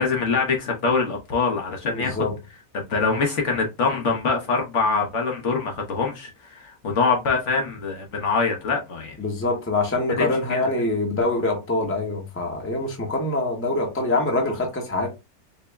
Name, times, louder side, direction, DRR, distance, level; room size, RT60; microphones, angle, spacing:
voice 1, 0.0-2.2 2.7-9.2 10.2-10.6, left 4 dB, 60° left, 1.0 m, -24 dB
voice 2, 1.9-2.3 9.2-15.1, left 2 dB, 10° left, 0.7 m, -24 dB
4.4 x 2.0 x 3.4 m
omnidirectional pair, 1.6 m